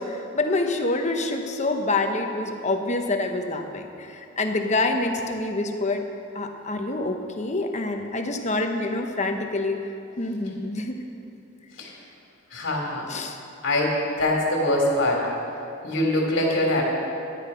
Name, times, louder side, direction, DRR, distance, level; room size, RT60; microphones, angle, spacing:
voice 1, 0.0-6.0 6.3-9.9 10.2-11.0 13.1-13.4, left 2 dB, 35° left, 4 dB, 1.0 m, -26 dB
voice 2, 12.5-13.1 13.6-15.3 15.8-16.8, left 1 dB, 65° left, -1 dB, 3.0 m, -23 dB
13.0 x 10.5 x 5.6 m, 2.7 s
head